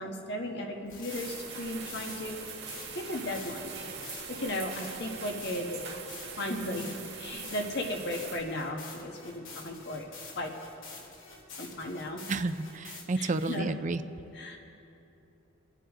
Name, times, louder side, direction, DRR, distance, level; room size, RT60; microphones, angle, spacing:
voice 1, 0.0-2.4 2.9-3.7 4.3-5.8 6.4-10.1 10.3-10.5 11.6-12.2 13.1-13.8 14.3-14.6, left 1 dB, 55° left, 1 dB, 1.5 m, -35 dB
sound 1, 0.9-13.6, left 4 dB, 75° left, 2.7 m, -48 dB
sound 2, 1.1-8.4, right 5 dB, 55° right, 1.9 m, -42 dB
voice 2, 12.3-14.0, right 3 dB, 35° right, 11 dB, 0.5 m, -31 dB
28.5 x 9.9 x 3.7 m, 2.9 s
head